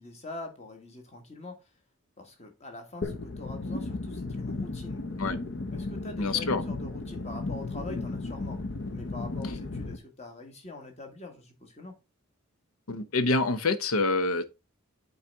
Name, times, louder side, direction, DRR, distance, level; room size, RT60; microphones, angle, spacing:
voice 1, 0.0-1.6 2.2-5.0 5.7-8.6 8.9-11.9, left 2 dB, 30° left, 1.4 m, -44 dB
sound 1, 3.0-10.0, left 2 dB, 55° left, 0.7 m, -35 dB
voice 2, 6.2-6.6 12.9-14.4, left 3 dB, 80° left, 0.8 m, -26 dB
8.6 x 4.1 x 3.4 m
head